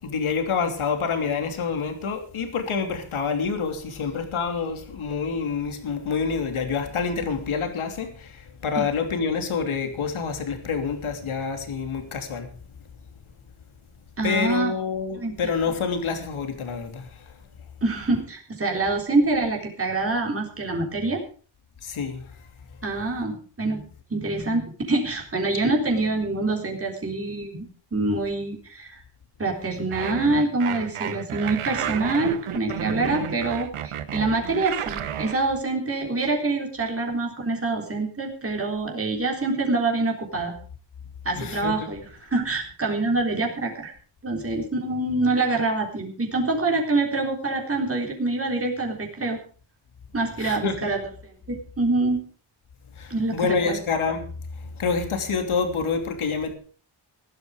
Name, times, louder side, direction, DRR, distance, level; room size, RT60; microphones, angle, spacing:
voice 1, 0.0-12.5 14.2-17.3 21.8-22.3 41.3-41.9 50.4-50.8 53.0-54.3 54.6-56.5, left 5 dB, 75° left, 3.1 m, -27 dB
voice 2, 14.2-14.7 15.2-15.5 17.8-21.2 22.8-23.8 24.1-27.7 27.9-29.0 29.4-40.5 41.3-43.9 44.2-49.4 50.1-51.0 51.5-52.2 53.1-53.8, right 2 dB, 25° right, 3.7 m, -25 dB
sound 1, 29.9-35.4, right 9 dB, 90° right, 1.2 m, -31 dB
16.0 x 12.0 x 5.0 m
wide cardioid pair, 115°, 49 cm